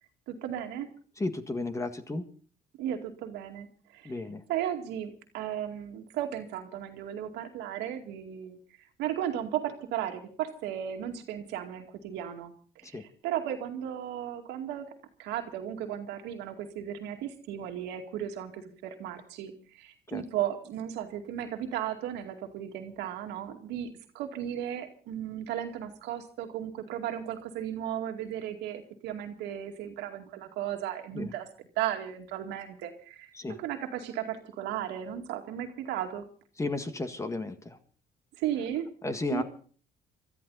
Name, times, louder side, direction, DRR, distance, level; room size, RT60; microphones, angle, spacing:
voice 1, 0.3-0.9 2.8-3.7 3.9-4.1 4.5-8.6 9.0-14.9 15.2-31.5 31.8-36.3 38.4-38.9 39.3-39.4, right 10 dB, 90° right, 4 dB, 2.3 m, -35 dB
voice 2, 1.2-2.3 4.1-4.4 12.8-13.0 20.1-20.2 31.1-31.3 33.4-33.6 36.6-37.8 39.0-39.4, left 2 dB, 15° left, 9 dB, 1.7 m, -33 dB
23.5 x 13.5 x 4.1 m, 0.43 s
cardioid pair, 110°, 17 cm